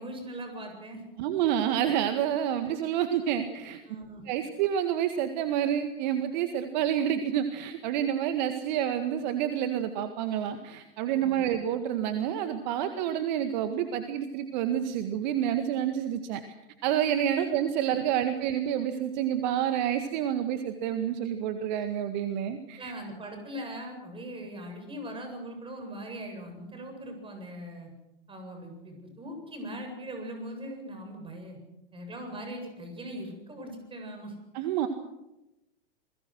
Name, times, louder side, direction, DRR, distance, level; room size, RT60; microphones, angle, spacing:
voice 1, 0.0-1.0 3.9-4.2 11.1-11.6 22.8-27.9 28.3-31.6 31.9-34.3, equal, 15° right, 5 dB, 7.9 m, -40 dB
voice 2, 1.2-3.8 4.3-16.4 16.8-22.9 34.5-34.9, right 10 dB, 50° right, 8 dB, 1.9 m, -28 dB
28.0 x 21.0 x 6.4 m, 0.93 s
figure-of-eight pair, 95°, 29 cm